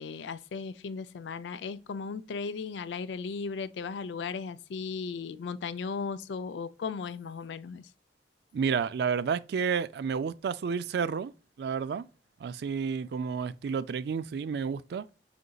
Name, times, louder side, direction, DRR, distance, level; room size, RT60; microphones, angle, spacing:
voice 1, 0.0-7.9, left 5 dB, 80° left, 0.4 m, -36 dB
voice 2, 8.5-11.3 11.6-12.1 12.4-15.1, right 6 dB, 65° right, 0.3 m, -30 dB
5.1 x 3.9 x 2.2 m
head